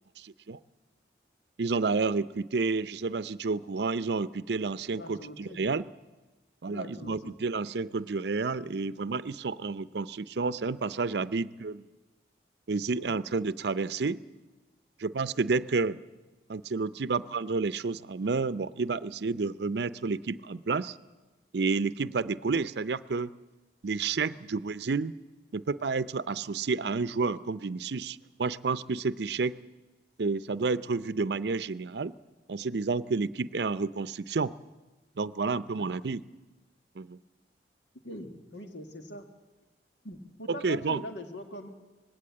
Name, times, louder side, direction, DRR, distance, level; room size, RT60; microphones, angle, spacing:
voice 1, 0.2-0.6 1.6-5.8 6.6-11.9 12.7-14.2 15.0-16.0 16.5-21.0 21.5-23.3 23.8-25.1 25.5-29.6 30.2-32.2 32.5-34.5 35.2-36.2 37.0-37.2 40.6-41.0, right 4 dB, 70° right, 16 dB, 0.5 m, -30 dB
voice 2, 5.0-5.6 6.6-7.4 12.9-13.2 22.0-22.2 35.7-36.0 37.9-39.3 40.0-41.7, left 1 dB, 85° left, 5 dB, 1.8 m, -43 dB
19.5 x 16.5 x 8.6 m, 1.2 s
head